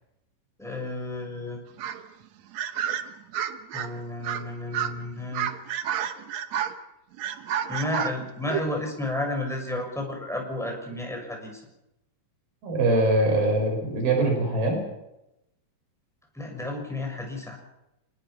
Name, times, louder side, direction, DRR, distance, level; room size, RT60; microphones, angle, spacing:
voice 1, 0.6-1.6 3.7-5.5 7.7-11.6 16.3-17.6, left 2 dB, ahead, 1 dB, 6.5 m, -32 dB
sound 1, 1.8-2.1 2.5-3.9 4.2-4.5 4.7-4.9 5.3-6.8 7.2-8.7, right 9 dB, 65° right, 1.9 m, -30 dB
voice 2, 12.6-14.8, right 2 dB, 85° right, 2 dB, 7.3 m, -23 dB
28.0 x 19.5 x 6.2 m, 0.90 s
omnidirectional pair, 4.2 m